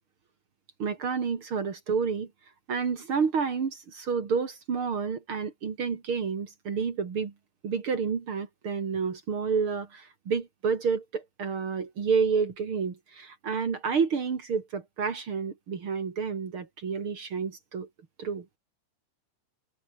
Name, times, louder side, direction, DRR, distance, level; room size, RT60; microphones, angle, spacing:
voice 1, 0.8-2.3 2.7-7.3 7.6-17.9 18.2-18.4, right 5 dB, 45° right, 1.7 m, -29 dB
omnidirectional pair, 5.8 m